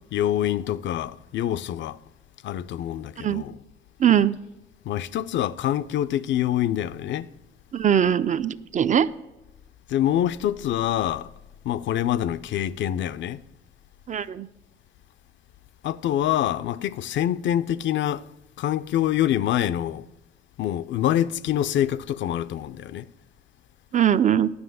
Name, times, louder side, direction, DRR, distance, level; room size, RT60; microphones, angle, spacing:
voice 1, 0.1-2.0 2.4-3.6 4.8-7.3 9.9-11.3 11.6-13.4 15.8-18.3 18.6-20.1 20.6-23.1, left 11 dB, 70° left, 0.5 m, -25 dB
voice 2, 4.0-4.4 7.7-9.1 14.1-14.5 23.9-24.5, right 9 dB, 40° right, 0.4 m, -21 dB
9.6 x 5.9 x 7.8 m
cardioid pair, 90°, 20 cm